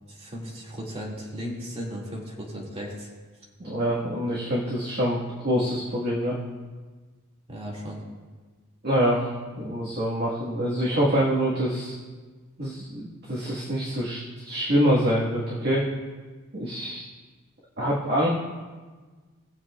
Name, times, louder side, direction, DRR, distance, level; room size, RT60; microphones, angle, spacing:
voice 1, 0.1-3.1 7.5-8.0, equal, 30° right, -4 dB, 2.2 m, -36 dB
voice 2, 3.6-6.4 8.8-11.9 12.6-15.9 16.5-17.0 17.8-18.3, equal, 50° right, -6 dB, 1.7 m, -25 dB
20.0 x 7.5 x 2.4 m, 1.4 s
head